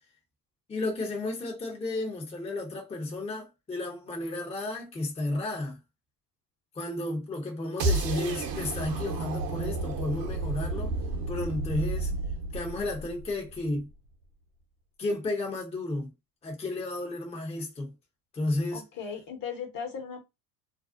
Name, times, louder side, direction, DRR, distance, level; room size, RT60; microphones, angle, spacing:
voice 1, 0.7-5.8 6.7-10.9 11.3-12.1 12.5-13.9 15.0-16.1 16.4-17.9 18.3-18.8, left 2 dB, 15° left, 0.7 m, -32 dB
sound 1, 7.8-13.8, right 2 dB, 45° right, 0.9 m, -31 dB
voice 2, 18.7-20.2, left 6 dB, 45° left, 1.1 m, -37 dB
2.5 x 2.0 x 2.4 m
hypercardioid pair, 75°, 47 cm